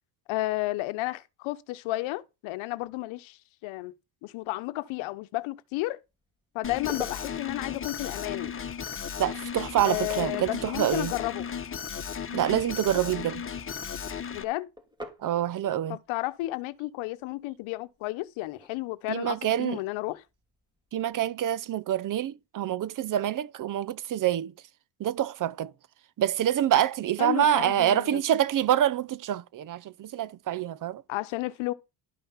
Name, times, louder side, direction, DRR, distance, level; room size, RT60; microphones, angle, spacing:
voice 1, 0.3-3.9 4.2-6.0 6.5-8.6 9.8-11.5 14.3-14.7 15.9-20.2 27.2-28.2 31.1-31.7, left 19 dB, 75° left, 1.0 m, -32 dB
sound 1, 6.0-21.2, equal, 10° right, 2.8 m, -52 dB
Alarm, 6.6-14.4, left 7 dB, 25° left, 1.4 m, -35 dB
voice 2, 9.2-11.1 12.3-13.4 15.2-16.0 19.1-19.8 20.9-24.5 25.0-25.7 26.2-31.0, right 11 dB, 40° right, 0.8 m, -26 dB
12.0 x 5.7 x 5.7 m
cardioid pair, 105°, 47 cm